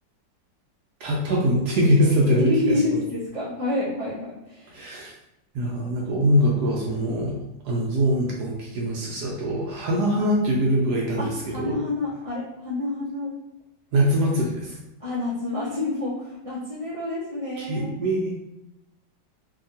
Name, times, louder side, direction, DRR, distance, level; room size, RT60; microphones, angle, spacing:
voice 1, 1.0-3.0 4.7-5.1 5.5-7.4 7.6-11.8 13.9-14.8 17.6-18.3, equal, 75° right, -3 dB, 1.0 m, -23 dB
voice 2, 2.4-4.8 11.2-13.3 15.0-18.0, left 2 dB, 65° left, -11 dB, 0.3 m, -28 dB
2.8 x 2.7 x 2.6 m, 0.90 s
omnidirectional pair, 2.0 m